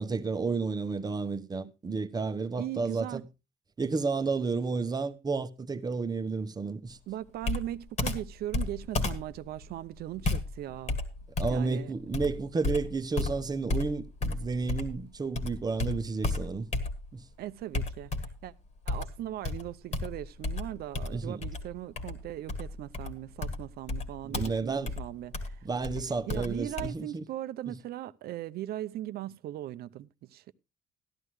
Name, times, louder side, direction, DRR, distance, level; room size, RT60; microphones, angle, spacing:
voice 1, 0.0-3.3 3.8-7.0 11.4-16.7 17.1-17.2 21.1-21.4 24.3-24.9 25.6-27.3, right 4 dB, 25° right, 0.9 m, -31 dB
voice 2, 2.6-3.2 7.1-11.0 11.5-11.9 17.4-18.1 18.4-18.5 18.9-25.6 26.3-30.5, right 13 dB, 65° right, 0.6 m, -39 dB
Computer keyboard, 7.4-15.0 15.3-17.2 17.7-18.5 18.9-26.9, left 2 dB, 45° left, 1.9 m, -34 dB
14.0 x 11.0 x 3.1 m
cardioid pair, 110°, 17 cm